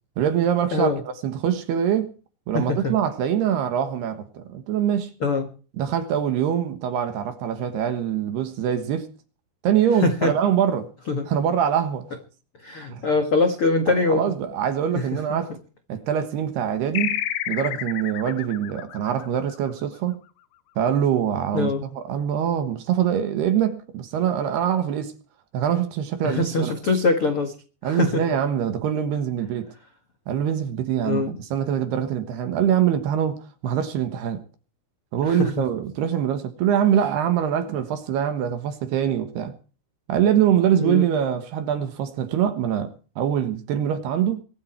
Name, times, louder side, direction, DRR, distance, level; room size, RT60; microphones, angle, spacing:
voice 1, 0.2-2.1 2.5-5.1 5.8-9.1 9.6-10.9 11.3-12.1 12.9-13.1 13.9-15.5 15.9-17.2 17.5-20.2 20.8-25.1 25.5-26.7 27.8-29.7 30.3-34.4 35.1-39.6 40.1-44.4, right 9 dB, 65° right, 3.0 m, -24 dB
voice 2, 2.5-2.9 5.2-5.5 10.0-10.3 11.1-11.3 12.6-14.2 14.9-15.4 21.5-21.8 26.2-27.5 27.8-28.2 31.0-31.4 35.2-35.6 40.8-41.0, left 3 dB, 65° left, 1.3 m, -23 dB
sound 1, 17.0-20.0, left 13 dB, 90° left, 3.7 m, -30 dB
23.0 x 12.0 x 4.5 m
omnidirectional pair, 5.8 m